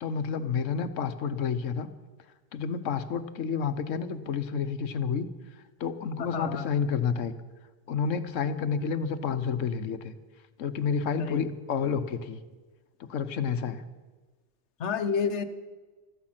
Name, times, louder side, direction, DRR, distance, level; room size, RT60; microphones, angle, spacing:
voice 1, 0.0-1.9 2.5-5.3 5.8-7.3 7.9-10.1 10.6-12.4 13.1-13.8, left 6 dB, 90° left, 12 dB, 1.2 m, -29 dB
voice 2, 6.2-6.7 11.2-11.6 14.8-15.4, left 6 dB, 70° left, 11 dB, 1.2 m, -30 dB
15.0 x 13.5 x 5.9 m, 1.3 s
omnidirectional pair, 1.3 m